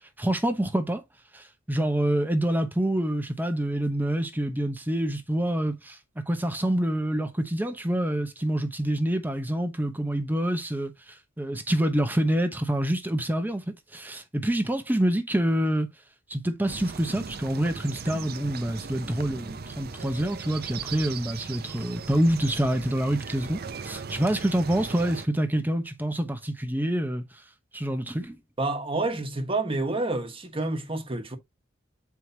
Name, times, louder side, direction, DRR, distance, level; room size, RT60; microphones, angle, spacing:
voice 1, 0.2-1.0 1.3-13.6 13.9-15.9 16.3-27.2 27.7-28.4, right 1 dB, 10° right, 0.9 m, -27 dB
sound 1, 16.7-25.3, right 5 dB, 50° right, 0.6 m, -38 dB
voice 2, 28.6-31.4, right 2 dB, 30° right, 1.4 m, -28 dB
7.7 x 4.7 x 2.8 m
head